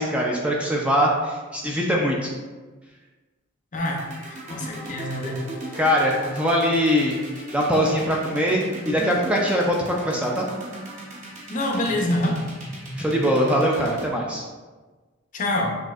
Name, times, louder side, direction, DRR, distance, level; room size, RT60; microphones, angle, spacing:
voice 1, 0.0-2.3 5.7-7.2 7.5-10.5 13.0-14.4, equal, 5° right, -2 dB, 0.4 m, -22 dB
voice 2, 3.7-5.4 11.5-12.4 15.3-15.8, left 1 dB, 40° left, 0 dB, 0.6 m, -26 dB
sound 1, 3.8-14.0, right 1 dB, 35° right, 0.8 m, -37 dB
6.0 x 2.7 x 2.4 m, 1.3 s
head